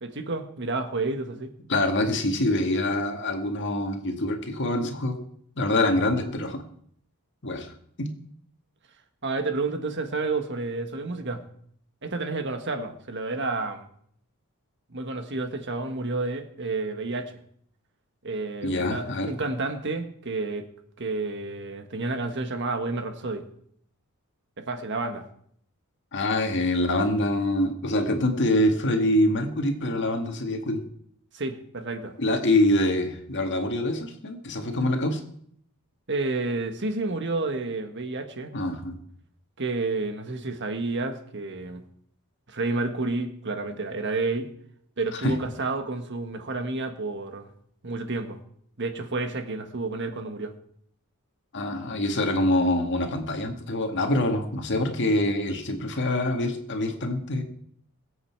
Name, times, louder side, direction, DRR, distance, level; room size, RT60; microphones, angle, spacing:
voice 1, 0.0-1.5 9.2-11.4 12.0-13.9 14.9-17.3 18.2-20.7 21.0-23.4 24.6-25.3 31.3-32.1 36.1-38.5 39.6-41.8 42.5-44.5 45.0-47.5 47.8-48.4 48.8-50.5, right 3 dB, 55° right, 7 dB, 1.5 m, -30 dB
voice 2, 1.7-5.2 5.6-6.6 7.4-7.7 8.0-8.1 18.6-19.3 26.1-30.8 32.2-35.2 38.5-39.0 45.1-45.3 51.5-57.4, left 1 dB, 55° left, 5 dB, 1.9 m, -25 dB
23.0 x 8.1 x 4.7 m, 0.65 s
head